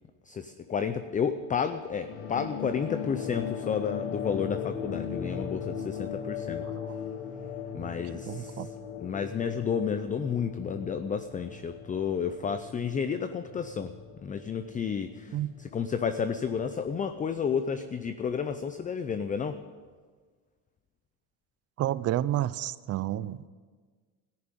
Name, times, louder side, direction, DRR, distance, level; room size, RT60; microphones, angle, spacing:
voice 1, 0.3-6.6 7.7-8.7 9.0-13.9 14.2-19.6, left 6 dB, 20° left, 10 dB, 0.5 m, -31 dB
sound 1, 1.9-16.8, left 7 dB, 70° left, 2.1 m, -38 dB
voice 2, 8.1-8.7 15.3-15.5 21.8-23.5, right 13 dB, 35° right, 17 dB, 0.5 m, -30 dB
13.5 x 10.5 x 9.1 m, 1.5 s
cardioid pair, 125°, 42 cm